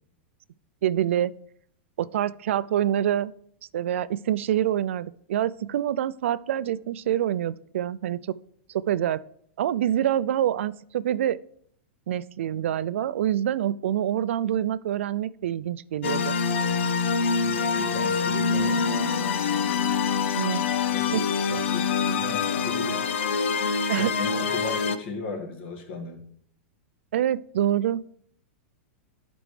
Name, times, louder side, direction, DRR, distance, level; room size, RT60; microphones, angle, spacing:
voice 1, 0.8-1.3 2.0-3.3 3.7-8.3 8.7-9.2 9.6-11.4 12.1-16.4 20.4-20.7 21.1-21.2 23.9-24.2 27.1-28.2, right 11 dB, 80° right, 17 dB, 0.4 m, -26 dB
sound 1, 16.0-25.0, left 5 dB, 75° left, 0.6 m, -25 dB
voice 2, 17.4-19.2 20.9-23.0 24.0-26.2, left 4 dB, 55° left, 2 dB, 2.0 m, -37 dB
11.0 x 5.1 x 3.3 m, 0.65 s
supercardioid pair, 140°, 7 cm